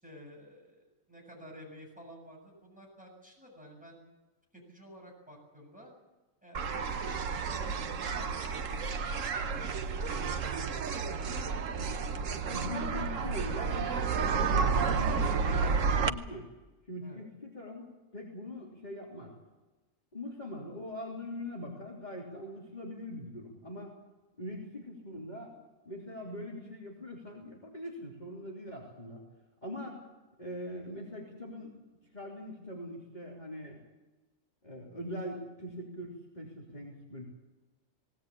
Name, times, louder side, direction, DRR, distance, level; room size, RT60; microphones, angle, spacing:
voice 1, 0.0-4.0 4.5-5.9 6.4-6.7 7.3-8.9 9.6-11.2 17.0-17.2, equal, 5° right, -2 dB, 7.5 m, -52 dB
sound 1, 6.5-16.1, right 5 dB, 70° right, 1.3 m, -31 dB
voice 2, 12.2-16.5 16.9-19.3 20.1-23.9 24.4-25.6 25.9-29.2 29.6-30.0 30.4-31.7 32.1-33.8 34.6-37.2, left 1 dB, 30° left, -3 dB, 3.7 m, -42 dB
19.0 x 19.0 x 8.7 m, 1.1 s
omnidirectional pair, 1.4 m